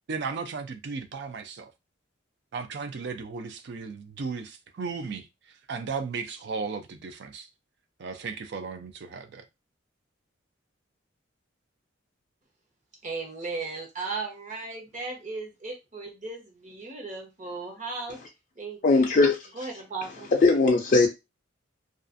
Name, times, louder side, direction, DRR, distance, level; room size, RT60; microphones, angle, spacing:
voice 1, 0.1-1.7 2.5-5.3 5.7-7.5 8.0-9.4, right 4 dB, 55° right, 0.4 m, -35 dB
voice 2, 13.0-18.2 18.6-19.1 19.5-20.3, right 3 dB, 40° right, 0.8 m, -36 dB
voice 3, 18.8-19.4 20.4-21.1, left 3 dB, 40° left, 0.4 m, -19 dB
2.4 x 2.4 x 2.5 m
head